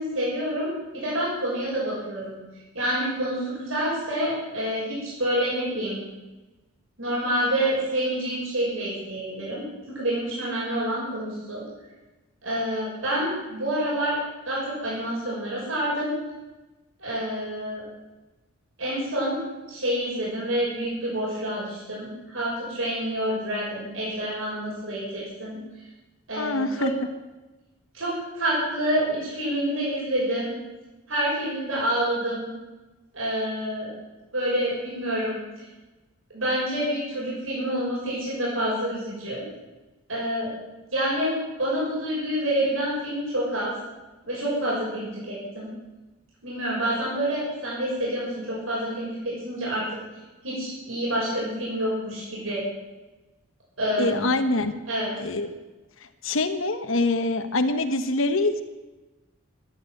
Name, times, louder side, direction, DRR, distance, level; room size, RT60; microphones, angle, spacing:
voice 1, 0.0-2.4 2.7-6.0 7.0-11.6 12.4-14.2 14.4-16.1 17.0-17.8 18.8-19.4 19.7-25.6 26.3-26.9 27.9-30.6 31.1-32.5 33.1-33.9 34.3-35.6 36.3-39.4 40.1-40.5 40.9-43.7 44.2-45.7 46.4-49.9 50.4-52.6 53.8-54.3 54.9-55.1, right 1 dB, 70° right, -6 dB, 6.5 m, -28 dB
voice 2, 26.4-26.9 54.0-54.7 55.2-55.5 56.2-58.6, left 2 dB, 65° left, 8 dB, 1.2 m, -24 dB
13.5 x 12.0 x 7.8 m, 1.1 s
head